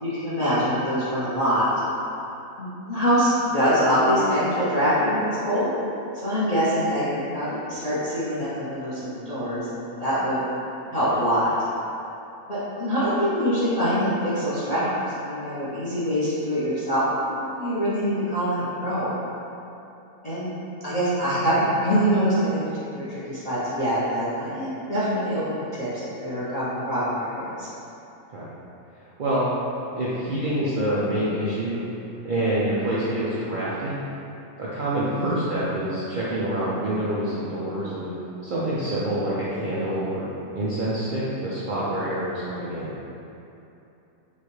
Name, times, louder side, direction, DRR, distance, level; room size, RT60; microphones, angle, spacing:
voice 1, 0.0-1.7 2.6-5.7 6.1-10.4 10.9-11.5 12.5-17.1 17.4-19.1 20.2-20.5 20.8-27.7 35.2-35.4, equal, 35° left, -11 dB, 0.7 m, -24 dB
voice 2, 29.9-31.8 32.2-34.0 34.6-38.1 38.4-40.3 40.5-42.9, right 1 dB, 65° right, -9 dB, 0.5 m, -26 dB
5.7 x 2.4 x 3.1 m, 2.9 s
omnidirectional pair, 1.6 m